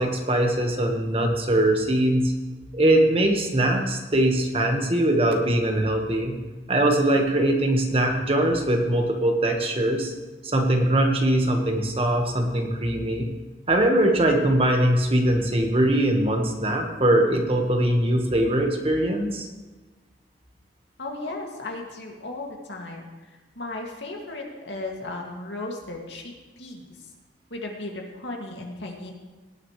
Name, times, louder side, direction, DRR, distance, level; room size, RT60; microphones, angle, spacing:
voice 1, 0.0-2.3 2.7-6.4 6.7-10.1 10.4-13.3 13.7-19.5, right 1 dB, 30° right, 2 dB, 1.5 m, -22 dB
voice 2, 21.0-26.8 27.5-29.1, left 2 dB, 90° left, 0 dB, 2.3 m, -35 dB
18.0 x 10.0 x 3.2 m, 1.3 s
head